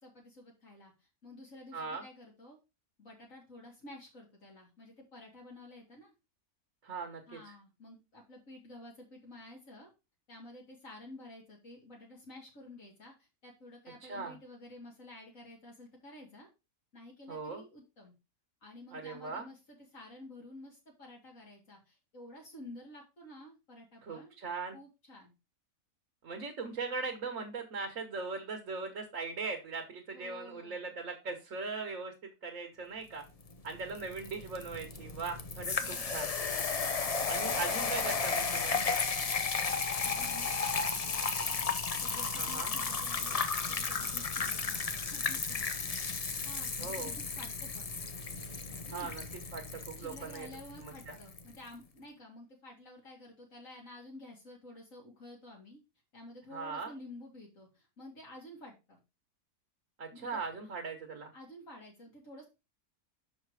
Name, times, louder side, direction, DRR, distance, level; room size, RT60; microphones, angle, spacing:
voice 1, 0.0-2.6 3.0-6.1 7.3-9.9 10.3-16.5 16.9-18.1 18.6-24.3 24.7-25.3 30.1-30.9 35.8-36.2 40.0-41.6 42.0-45.8 46.4-47.9 48.9-49.1 50.0-55.8 56.1-59.0 60.1-60.3 61.3-62.5, left 1 dB, 60° left, -2 dB, 2.5 m, -51 dB
voice 2, 1.7-2.0 6.8-7.4 14.1-14.3 17.3-17.6 18.9-19.5 24.0-24.8 26.2-33.2 33.6-36.3 37.3-39.0 42.3-42.7 46.8-47.1 48.9-49.2 49.5-50.5 50.8-51.2 56.5-56.9 60.0-61.3, right 4 dB, 60° right, 2 dB, 1.6 m, -39 dB
sound 1, 33.5-51.5, left 5 dB, 45° left, 0.5 m, -34 dB
6.2 x 4.9 x 4.8 m, 0.26 s
omnidirectional pair, 1.6 m